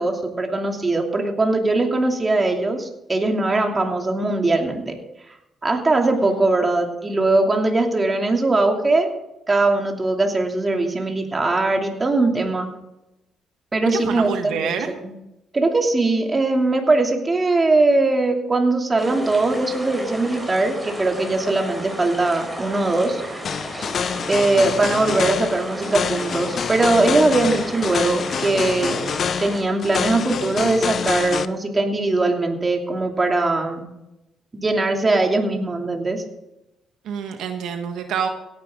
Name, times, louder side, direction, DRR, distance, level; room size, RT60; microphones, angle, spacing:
voice 1, 0.0-5.0 5.6-9.1 9.5-12.7 13.7-15.1 15.5-23.2 23.7-23.9 24.3-29.0 29.4-33.9 34.5-36.2, right 2 dB, 25° right, 2 dB, 2.7 m, -20 dB
voice 2, 13.9-14.9 37.0-38.3, right 7 dB, 80° right, 5 dB, 1.4 m, -27 dB
sound 1, 19.0-29.6, equal, 5° right, 5.3 m, -34 dB
sound 2, 23.4-31.5, left 7 dB, 55° left, 0.6 m, -26 dB
17.0 x 10.5 x 3.8 m, 0.90 s
cardioid pair, 90°, 0 cm